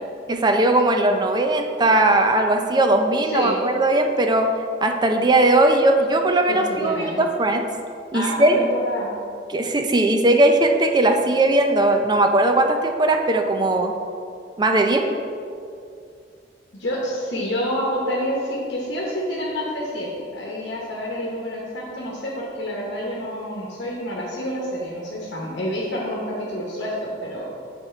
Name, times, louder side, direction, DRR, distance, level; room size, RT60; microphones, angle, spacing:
voice 1, 0.3-4.5 4.8-7.7 8.1-8.6 9.5-13.9 14.6-15.1, right 2 dB, 25° right, 4 dB, 0.5 m, -19 dB
voice 2, 3.2-3.6 6.5-7.3 8.1-9.1 16.8-27.4, equal, 65° left, -4 dB, 1.1 m, -28 dB
8.0 x 4.4 x 4.4 m, 2.4 s
head